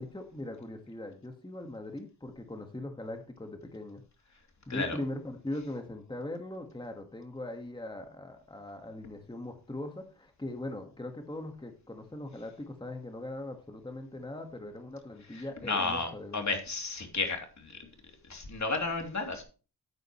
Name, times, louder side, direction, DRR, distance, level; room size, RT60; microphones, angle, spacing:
voice 1, 0.0-4.0 4.7-16.4, left 1 dB, 10° left, 4 dB, 1.7 m, -40 dB
voice 2, 15.3-17.8 18.2-19.4, left 3 dB, 45° left, 4 dB, 3.1 m, -33 dB
12.5 x 9.1 x 3.2 m, 0.34 s
cardioid pair, 85°, 38 cm